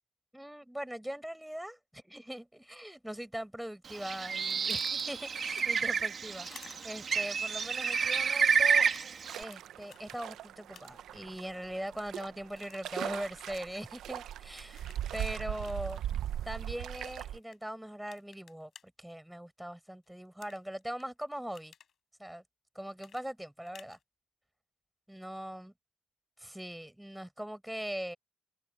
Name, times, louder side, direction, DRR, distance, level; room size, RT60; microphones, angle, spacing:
voice 1, 0.3-8.9 9.3-16.0 16.4-18.7 19.0-21.7 22.2-22.4 22.7-24.0 25.1-25.7 26.4-28.2, equal, 5° right, 5.7 m, -41 dB
Bird, 3.9-9.4, right 6 dB, 50° right, 2.0 m, -30 dB
sound 1, 4.5-6.1 6.4-7.1 7.7-8.2 8.8-9.6 9.9-10.0 10.7-11.1 11.5-12.2 12.6-13.0 13.5-13.8 14.8-15.1 15.6-15.8 17.1-17.6 18.1-18.8 20.4-21.0 21.4-21.9 23.0-24.0, left 8 dB, 60° left, 5.7 m, -54 dB
sound 2, 9.2-17.4, right 11 dB, 75° right, 0.9 m, -40 dB
cardioid pair, 90°, 0 cm